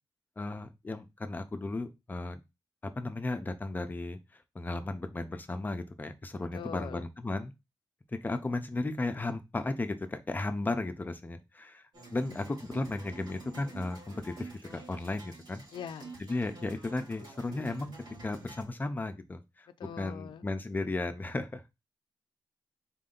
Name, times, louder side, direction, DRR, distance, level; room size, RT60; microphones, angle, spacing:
voice 1, 0.4-2.4 3.0-4.2 4.5-7.5 8.2-15.6 16.2-17.9 18.2-19.7 20.0-21.6, left 2 dB, 25° left, 0.6 m, -35 dB
voice 2, 6.5-7.0 15.7-16.2 19.8-20.5, left 7 dB, 80° left, 0.4 m, -42 dB
sound 1, 11.9-18.6, right 3 dB, 75° right, 3.1 m, -49 dB
4.2 x 2.7 x 3.8 m
wide cardioid pair, 115°, 8 cm